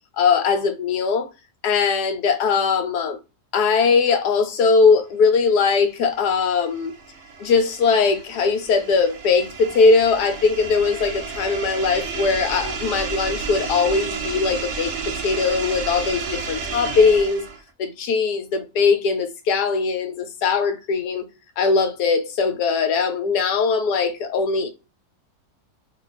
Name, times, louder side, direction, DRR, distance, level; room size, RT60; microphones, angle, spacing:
voice 1, 0.2-1.3 1.6-3.2 3.5-6.9 7.4-14.9 15.2-17.4 17.8-21.3 21.6-24.7, left 5 dB, 80° left, 1.2 m, -20 dB
sound 1, 5.8-17.7, right 5 dB, 60° right, 0.8 m, -32 dB
2.7 x 2.4 x 3.9 m
omnidirectional pair, 1.7 m